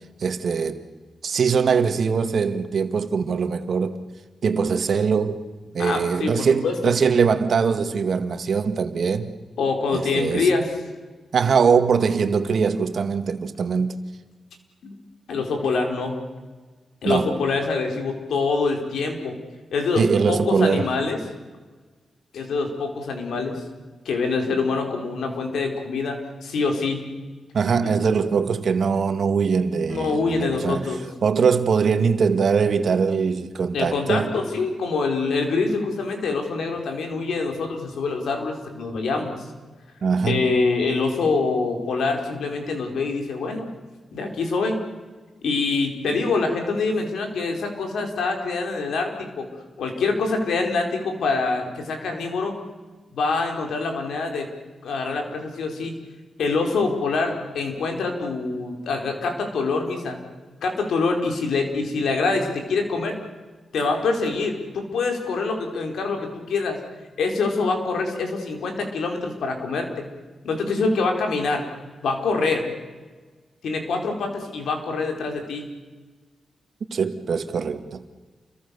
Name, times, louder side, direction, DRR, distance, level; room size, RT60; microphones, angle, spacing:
voice 1, 0.2-0.8 1.2-3.9 4.4-5.4 5.7-9.3 9.9-10.5 11.3-14.0 17.0-17.3 20.0-20.9 27.5-31.0 31.2-34.3 40.0-40.6 76.9-78.0, right 5 dB, 65° right, 2.0 m, -22 dB
voice 2, 5.8-6.8 9.6-10.6 14.8-15.0 15.3-16.2 17.0-19.4 19.7-21.2 22.3-23.6 24.0-27.1 29.9-31.0 33.7-39.4 40.2-43.7 44.1-44.8 45.4-49.1 49.4-49.5 49.8-52.5 53.1-54.5 54.8-55.9 56.4-60.2 60.6-63.2 63.7-66.8 67.2-70.1 70.4-71.6 72.0-72.7 73.6-75.7, left 4 dB, 85° left, 4.7 m, -25 dB
29.0 x 23.0 x 7.1 m
cardioid pair, 85°, 0 cm